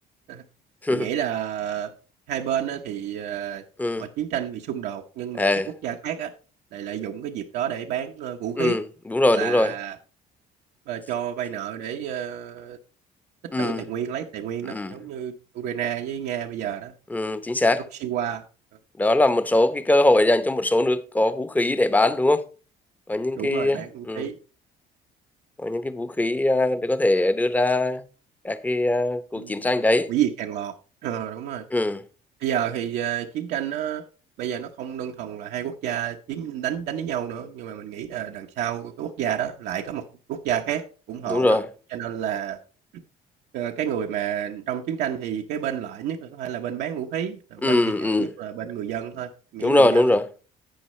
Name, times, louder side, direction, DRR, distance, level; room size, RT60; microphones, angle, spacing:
voice 1, 0.9-1.9 2.3-3.6 4.0-5.5 5.8-6.3 6.7-8.8 9.3-10.0 10.9-12.8 13.6-16.9 17.6-18.4 23.4-24.4 29.4-29.6 30.1-30.7 31.0-31.6 32.4-34.0 34.4-40.0 40.3-40.8 41.1-41.6 41.9-42.6 43.5-50.2, right 10 dB, 80° right, 0.9 m, -30 dB
voice 2, 5.4-5.7 8.6-9.7 13.5-13.8 14.7-15.0 17.1-17.8 19.0-22.4 23.1-24.3 25.6-28.0 28.4-30.1 31.7-32.0 41.3-41.6 47.6-48.3 49.6-50.2, left 1 dB, 10° left, 0.8 m, -21 dB
11.5 x 8.1 x 3.2 m
cardioid pair, 110°, 17 cm